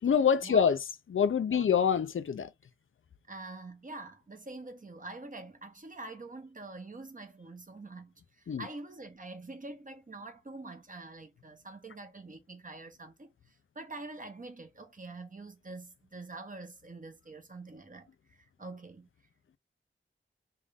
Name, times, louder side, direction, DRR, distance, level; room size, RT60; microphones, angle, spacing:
voice 1, 0.0-0.8 1.1-2.5 8.5-8.6, left 7 dB, 70° left, 0.5 m, -25 dB
voice 2, 3.3-8.1 8.6-13.3 13.7-18.1 18.6-19.1, right 3 dB, 40° right, 0.9 m, -45 dB
3.5 x 2.5 x 3.4 m
wide cardioid pair, 85°, 21 cm